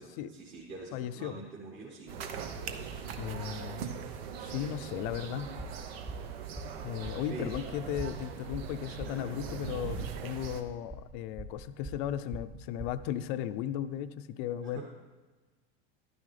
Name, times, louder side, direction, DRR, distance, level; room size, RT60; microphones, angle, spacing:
voice 1, 0.0-2.5 7.3-7.5 9.0-9.4 14.6-14.8, right 3 dB, 40° right, -4 dB, 1.7 m, -45 dB
voice 2, 0.9-1.4 3.2-3.8 4.4-5.5 6.8-14.8, left 10 dB, 55° left, 12 dB, 0.6 m, -36 dB
sound 1, 2.1-10.6, right 6 dB, 75° right, 1.0 m, -40 dB
sound 2, 5.6-13.1, right 2 dB, 15° right, 1.3 m, -43 dB
11.5 x 9.5 x 3.3 m, 1.3 s
supercardioid pair, 115°, 31 cm